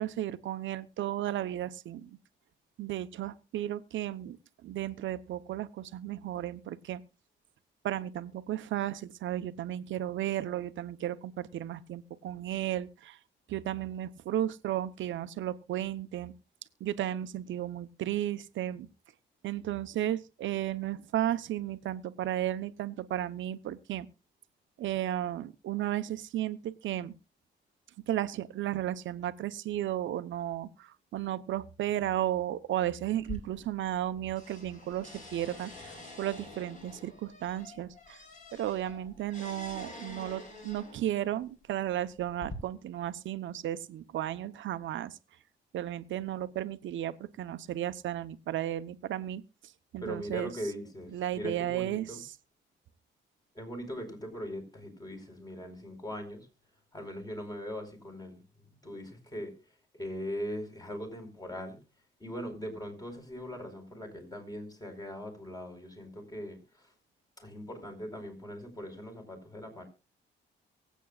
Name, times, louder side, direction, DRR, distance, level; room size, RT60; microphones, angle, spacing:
voice 1, 0.0-2.2 2.8-4.4 4.6-7.0 7.8-13.2 13.5-16.3 16.8-18.9 19.4-24.1 24.8-27.1 28.1-38.2 38.5-45.2 45.7-49.4 49.9-50.5 51.1-52.3, right 12 dB, 75° right, 1.0 m, -34 dB
sound 1, 33.2-34.1 34.4-41.2 41.9-42.5, left 2 dB, 40° left, 4.9 m, -47 dB
voice 2, 50.0-52.2 53.5-56.5 56.9-58.4 58.8-59.5 59.9-61.8 62.2-66.9 67.4-69.8, equal, 20° left, 4.8 m, -40 dB
24.0 x 8.4 x 2.4 m
cardioid pair, 90°, 20 cm